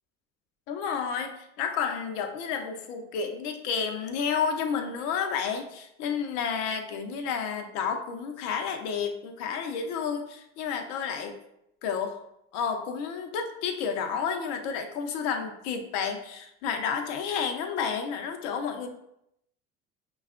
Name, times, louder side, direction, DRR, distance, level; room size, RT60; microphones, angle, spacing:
voice 1, 0.7-11.3 11.8-12.2 12.5-18.9, left 6 dB, 70° left, 6 dB, 0.6 m, -31 dB
5.3 x 2.3 x 2.4 m, 0.79 s
hypercardioid pair, 75°, 34 cm